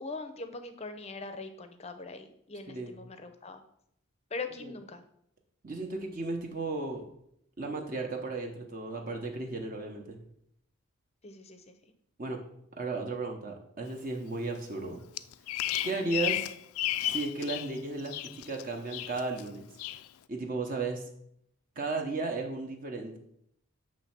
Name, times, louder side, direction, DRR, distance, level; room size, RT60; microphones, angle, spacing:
voice 1, 0.0-3.6 4.3-5.0 11.2-11.8, left 3 dB, 30° left, 8 dB, 0.5 m, -41 dB
voice 2, 5.6-7.0 7.6-10.2 12.2-12.4 12.8-15.0 15.8-16.4 17.1-18.2 18.5-19.7 20.3-21.0 21.8-23.2, right 3 dB, 40° right, 2 dB, 0.8 m, -34 dB
Bird vocalization bird call bird song, 15.2-17.7 18.0-18.6 18.9-19.4 19.8-20.0, left 13 dB, 80° left, 0.3 m, -33 dB
7.3 x 3.2 x 5.9 m, 0.72 s
head